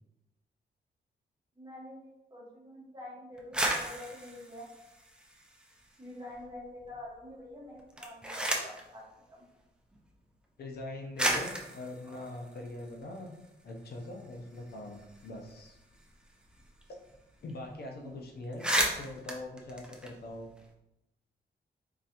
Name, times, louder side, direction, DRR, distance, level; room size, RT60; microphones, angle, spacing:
voice 1, 1.6-4.7 6.0-9.0 9.3-9.4 12.0-12.6 17.9-18.2 18.6-19.1, left 1 dB, 20° right, -5 dB, 1.1 m, -47 dB
sound 1, 3.4-6.0 6.3-7.0 7.8-8.9 9.9-10.0 10.8-10.9 11.2-13.5 13.9-14.0 14.2-16.8 17.1-17.2 17.5-17.7 18.1-18.2 18.4-20.7, right 1 dB, 5° right, 0.4 m, -35 dB
voice 2, 10.6-13.4 13.6-15.8 16.9-17.0 17.4-20.5, left 2 dB, 60° left, 1 dB, 0.6 m, -42 dB
3.9 x 3.1 x 2.8 m, 0.90 s
wide cardioid pair, 175°, 18 cm